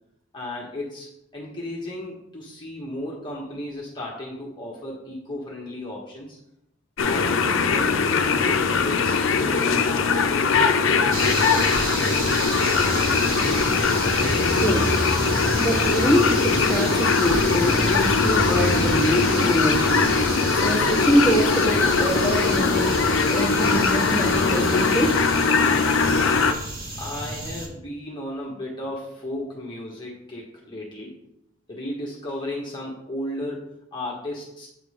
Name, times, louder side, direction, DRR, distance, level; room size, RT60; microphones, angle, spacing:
voice 1, 0.3-6.4 7.0-7.4 7.7-11.0 11.7-12.4 27.0-31.1 31.7-34.7, left 1 dB, 20° left, -4 dB, 1.0 m, -35 dB
sound 1, 7.0-26.5, left 5 dB, 70° left, 0.6 m, -21 dB
sound 2, 11.1-27.7, right 1 dB, 45° right, 1.5 m, -29 dB
voice 2, 14.5-15.0 15.6-20.0 20.5-22.9 23.3-25.2, equal, 10° right, -4 dB, 1.6 m, -24 dB
8.3 x 3.7 x 4.9 m, 0.83 s
head